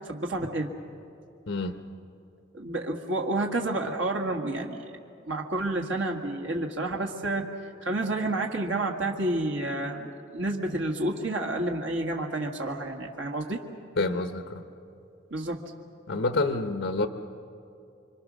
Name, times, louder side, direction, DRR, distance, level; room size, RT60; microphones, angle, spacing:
voice 1, 0.1-0.7 2.5-4.8 5.3-7.5 7.8-13.6 15.3-15.6, right 2 dB, 75° right, 1 dB, 1.8 m, -30 dB
voice 2, 1.5-1.8 14.0-14.6 16.1-17.1, left 3 dB, 75° left, 7 dB, 1.1 m, -28 dB
26.5 x 25.0 x 6.3 m, 2.6 s
head